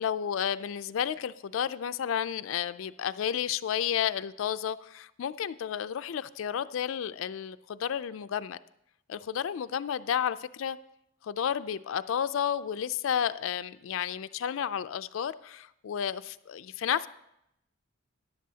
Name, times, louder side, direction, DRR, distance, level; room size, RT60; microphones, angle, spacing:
voice 1, 0.0-8.6 9.1-10.8 11.2-17.1, left 8 dB, 70° left, 14 dB, 0.3 m, -31 dB
13.5 x 10.0 x 2.8 m, 0.81 s
head